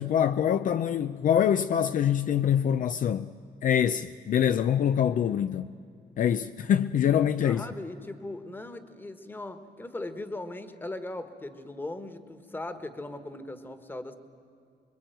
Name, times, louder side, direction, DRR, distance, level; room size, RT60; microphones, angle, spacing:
voice 1, 0.0-3.3 3.6-5.7 6.2-7.6, left 9 dB, 55° left, 0.5 m, -25 dB
voice 2, 7.4-14.2, left 2 dB, 10° left, 1.4 m, -39 dB
26.0 x 22.5 x 9.2 m
wide cardioid pair, 170°, 17 cm